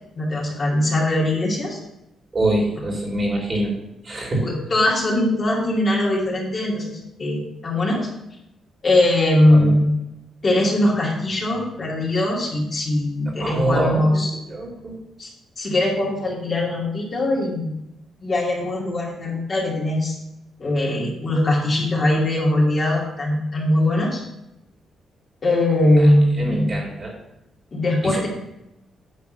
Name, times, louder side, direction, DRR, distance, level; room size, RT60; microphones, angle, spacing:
voice 1, 0.2-1.8 4.4-8.1 8.8-9.8 10.4-14.3 15.2-15.3 15.6-17.7 18.2-20.2 20.6-24.2 25.4-26.7 27.7-28.3, left 1 dB, 35° left, -3 dB, 2.3 m, -21 dB
voice 2, 2.3-3.7 4.0-4.4 9.5-9.7 13.4-14.2 14.5-15.0 26.4-27.1 28.0-28.3, right 1 dB, 30° right, -2 dB, 2.9 m, -24 dB
9.5 x 3.6 x 6.7 m, 0.86 s
cardioid pair, 130°, 0 cm